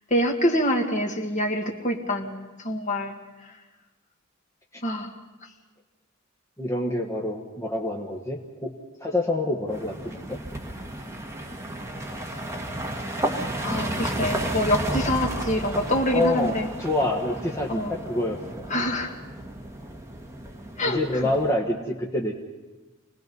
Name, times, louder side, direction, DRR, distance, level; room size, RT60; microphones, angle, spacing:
voice 1, 0.1-3.2 4.8-5.1 13.6-16.7 17.7-17.9 18.7-19.2 20.8-21.0, equal, 40° left, 3 dB, 2.0 m, -25 dB
voice 2, 6.6-8.7 9.0-10.4 16.1-18.6 20.8-22.4, left 1 dB, 15° left, -1 dB, 1.4 m, -27 dB
sound 1, 9.7-21.5, right 1 dB, 15° right, 1.6 m, -33 dB
27.0 x 19.5 x 5.4 m, 1.2 s
head